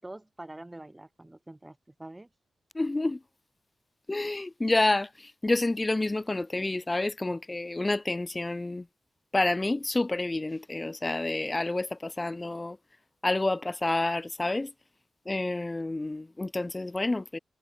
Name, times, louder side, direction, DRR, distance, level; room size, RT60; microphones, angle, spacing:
voice 1, 0.0-2.3, right 1 dB, 15° right, 4.2 m, -45 dB
voice 2, 2.7-3.2 4.1-8.9 9.3-12.8 13.2-14.7 15.3-17.4, left 2 dB, 20° left, 0.4 m, -29 dB
wide cardioid pair, 135°, 0 cm